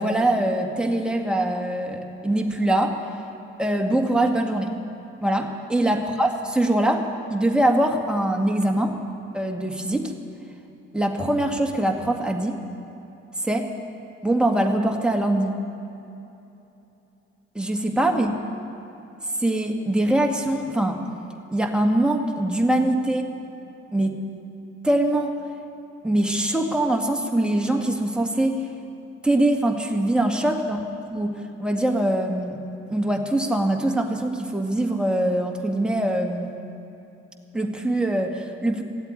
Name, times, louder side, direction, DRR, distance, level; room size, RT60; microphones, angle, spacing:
voice 1, 0.0-3.0 3.6-4.7 5.2-7.0 7.3-9.0 9.3-10.1 10.9-12.6 13.4-13.7 14.2-15.6 17.6-18.3 19.4-21.0 21.5-23.3 23.9-24.2 24.8-25.3 26.0-28.7 29.2-30.8 31.1-31.3 31.6-32.6 32.9-36.6 37.5-38.8, right 1 dB, 5° right, 2 dB, 1.9 m, -23 dB
15.0 x 8.1 x 9.9 m, 2.9 s
supercardioid pair, 55°, 30 cm